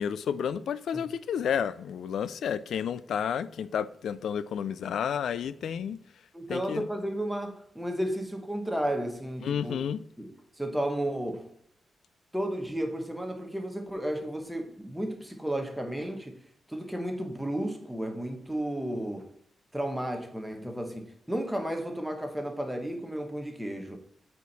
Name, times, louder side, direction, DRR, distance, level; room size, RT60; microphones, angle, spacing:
voice 1, 0.0-6.0 6.5-6.9 9.4-10.0, left 8 dB, 75° left, 0.4 m, -31 dB
voice 2, 6.3-9.7 10.2-10.3 10.6-11.5 12.3-16.3 16.7-19.3 19.7-24.0, right 1 dB, 5° right, 1.1 m, -33 dB
8.2 x 4.5 x 4.1 m
wide cardioid pair, 170°, 0 cm